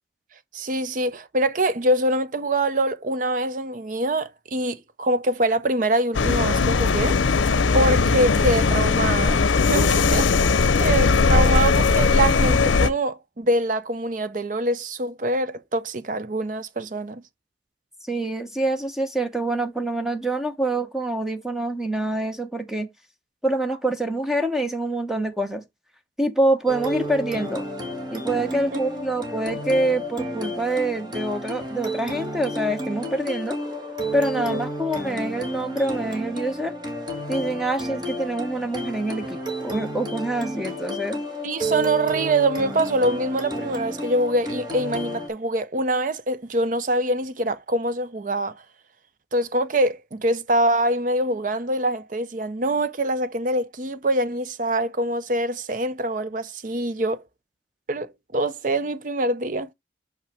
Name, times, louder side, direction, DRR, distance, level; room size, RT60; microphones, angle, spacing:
voice 1, 0.5-7.2 7.7-10.3 10.8-17.2 28.7-28.8 34.5-34.6 41.4-48.5 49.3-57.2 57.9-59.7, right 1 dB, 45° right, 0.6 m, -24 dB
sound 1, 6.1-12.9, left 4 dB, 80° left, 0.6 m, -19 dB
voice 2, 18.0-22.9 23.4-25.6 26.2-27.6 28.1-33.6 34.1-36.7 37.3-41.2, right 1 dB, ahead, 0.8 m, -26 dB
sound 2, 26.7-45.3, equal, 25° right, 1.5 m, -31 dB
6.0 x 5.5 x 3.4 m
head